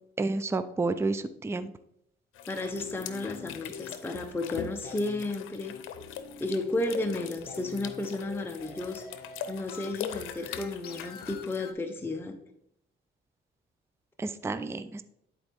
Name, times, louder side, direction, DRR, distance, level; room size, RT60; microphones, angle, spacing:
voice 1, 0.2-1.7 14.2-15.0, right 3 dB, 15° right, 12 dB, 0.4 m, -30 dB
sound 1, 2.3-11.6, left 9 dB, 85° left, 0.6 m, -42 dB
voice 2, 2.5-5.7 6.4-9.1 9.5-12.4, left 2 dB, 10° left, 4 dB, 0.7 m, -33 dB
sound 2, 2.6-11.7, left 6 dB, 50° left, 0.9 m, -46 dB
10.5 x 4.4 x 3.4 m, 0.76 s
cardioid pair, 90°, 20 cm